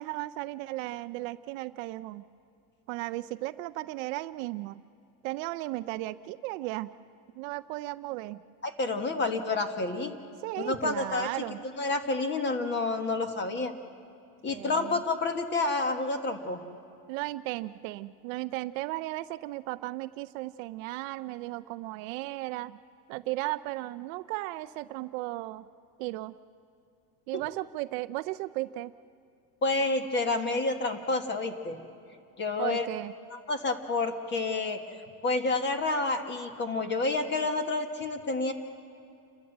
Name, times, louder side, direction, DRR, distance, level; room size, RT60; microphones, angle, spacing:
voice 1, 0.0-2.2 2.9-4.8 5.2-6.9 7.4-8.4 10.4-11.6 14.5-15.0 17.1-22.8 23.1-25.6 26.0-26.4 27.3-28.9 32.6-33.1, right 18 dB, 60° right, 12 dB, 0.5 m, -35 dB
voice 2, 8.6-10.1 10.6-11.3 11.8-13.7 14.4-16.6 29.6-31.8 32.4-32.9 33.5-34.8 35.2-38.5, left 3 dB, 25° left, 7 dB, 1.5 m, -29 dB
29.5 x 12.5 x 7.9 m, 2.5 s
supercardioid pair, 140°, 47 cm